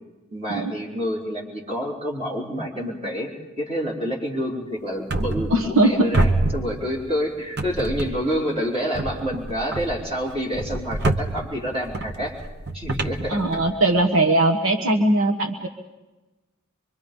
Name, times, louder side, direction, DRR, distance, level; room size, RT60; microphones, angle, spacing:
voice 1, 0.3-3.3 3.6-12.3 12.7-13.6, equal, 25° right, -3 dB, 4.3 m, -28 dB
sound 1, 5.1-5.9 6.1-7.2 7.6-8.4 8.9-14.0, right 2 dB, 50° right, 1.0 m, -27 dB
voice 2, 5.5-6.1 13.3-15.7, right 2 dB, 70° right, 4 dB, 1.3 m, -20 dB
24.5 x 24.0 x 5.4 m, 1.1 s
head